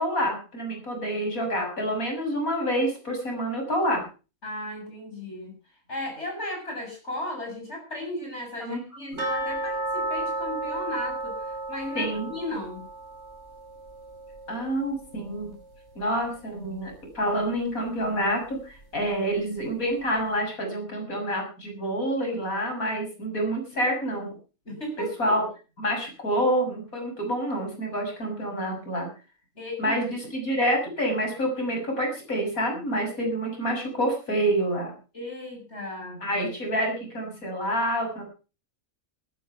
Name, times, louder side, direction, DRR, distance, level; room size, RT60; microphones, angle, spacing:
voice 1, 0.0-4.0 8.6-8.8 12.0-12.4 14.5-15.5 16.0-24.3 25.0-25.4 25.8-29.1 29.8-34.9 36.2-38.2, equal, 80° left, 2 dB, 7.3 m, -27 dB
voice 2, 4.4-5.5 5.9-12.9 24.7-25.4 29.6-30.0 35.1-36.3, left 1 dB, 50° left, 2 dB, 7.6 m, -35 dB
sound 1, 9.2-16.0 16.3-16.4 16.9-17.0 17.6-17.7, right 2 dB, 50° right, 4.5 m, -34 dB
14.5 x 13.5 x 5.8 m, 0.35 s
omnidirectional pair, 1.5 m